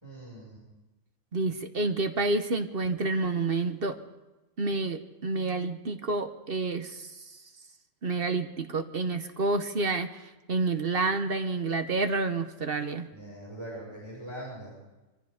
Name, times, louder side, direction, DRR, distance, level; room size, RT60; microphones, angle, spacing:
voice 1, 0.0-0.6 13.1-14.7, right 1 dB, 20° right, -5 dB, 5.8 m, -42 dB
voice 2, 1.3-4.0 4.6-7.1 8.0-10.1 10.5-13.1, right 3 dB, 45° right, 8 dB, 1.1 m, -29 dB
23.5 x 15.0 x 3.6 m, 1.1 s
omnidirectional pair, 1.5 m